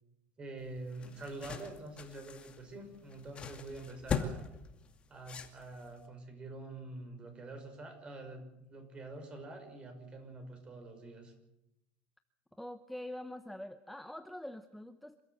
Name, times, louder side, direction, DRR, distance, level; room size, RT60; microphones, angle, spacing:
voice 1, 0.4-4.4 5.1-11.3, right 2 dB, 25° right, 6 dB, 5.8 m, -46 dB
sound 1, 0.6-6.0, left 6 dB, 25° left, 2.4 m, -41 dB
voice 2, 12.5-15.2, left 1 dB, ahead, 8 dB, 0.9 m, -45 dB
27.5 x 14.0 x 8.0 m, 0.88 s
cardioid pair, 145°, 4 cm